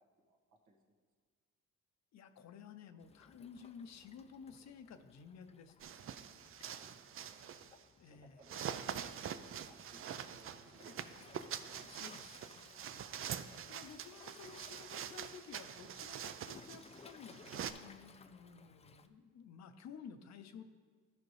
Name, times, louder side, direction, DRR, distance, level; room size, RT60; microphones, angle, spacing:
voice 1, 0.2-0.8 6.4-7.0 7.3-7.4 8.1-12.0 13.0-13.6, right 2 dB, 75° right, -1 dB, 1.7 m, -65 dB
voice 2, 2.1-5.7 8.0-8.4 11.8-12.5 13.7-20.6, left 6 dB, 65° left, 9 dB, 0.7 m, -54 dB
Waves surf, 3.0-19.1, left 5 dB, 20° left, 0.4 m, -61 dB
sound 1, 5.8-7.8 8.4-17.7, right 8 dB, 45° right, 0.4 m, -45 dB
13.0 x 5.1 x 3.2 m, 1.5 s
cardioid pair, 90°, 30 cm